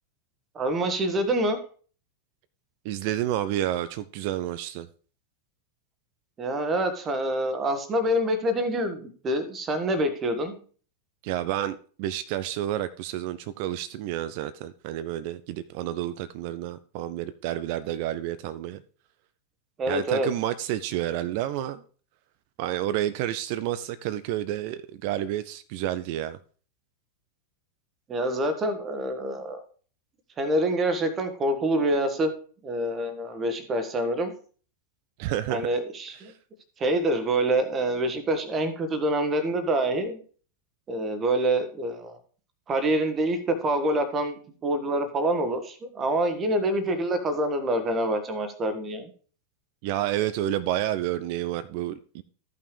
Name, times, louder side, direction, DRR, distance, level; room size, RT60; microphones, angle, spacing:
voice 1, 0.5-1.6 6.4-10.6 19.8-20.3 28.1-29.6 30.4-32.3 32.6-34.3 35.5-36.3 36.8-40.2 40.9-42.2 42.7-49.1, right 1 dB, 25° right, 1.3 m, -26 dB
voice 2, 2.8-4.9 11.2-18.8 19.9-21.8 22.6-26.4 35.2-35.7 36.3-36.4 49.8-52.2, right 12 dB, 45° right, 0.4 m, -30 dB
14.0 x 5.7 x 3.3 m
figure-of-eight pair, 90°, 0 cm